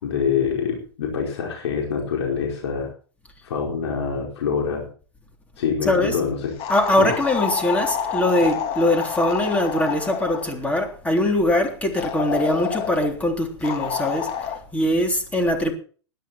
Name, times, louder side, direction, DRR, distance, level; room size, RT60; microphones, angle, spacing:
voice 1, 0.0-2.9 3.4-4.8 5.6-6.5 7.0-7.1, left 6 dB, 75° left, 5.0 m, -25 dB
voice 2, 5.8-6.2 6.7-15.7, left 1 dB, 10° left, 3.4 m, -22 dB
sound 1, 6.6-10.6 12.0-13.1 13.6-14.6, left 8 dB, 40° left, 2.8 m, -28 dB
17.0 x 11.5 x 4.5 m
hypercardioid pair, 115°, 14 cm